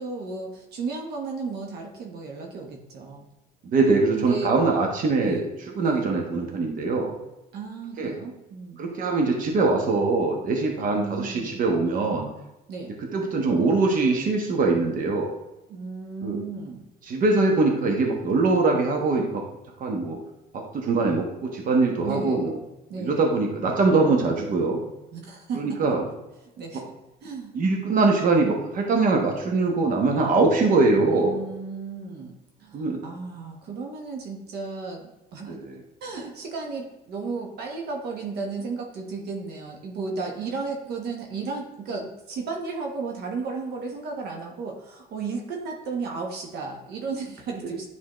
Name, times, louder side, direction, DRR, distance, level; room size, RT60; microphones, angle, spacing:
voice 1, 0.0-3.3 4.1-4.5 5.2-5.5 5.8-6.1 7.5-8.8 10.9-11.6 12.7-13.0 15.7-16.9 22.0-22.5 22.9-23.3 25.1-25.8 26.4-26.8 27.2-27.5 31.0-32.3 32.6-35.6 36.0-47.8, right 4 dB, 70° right, 1 dB, 1.2 m, -34 dB
voice 2, 3.6-5.4 5.8-7.1 8.0-8.1 8.8-12.3 13.1-15.3 16.2-16.4 17.1-19.4 19.8-20.2 20.5-22.6 23.0-24.8 25.5-26.0 27.5-31.3 32.7-33.0 35.5-35.8, right 3 dB, 55° right, 1 dB, 1.2 m, -22 dB
9.9 x 4.1 x 3.1 m, 0.96 s
cardioid pair, 110°, 17 cm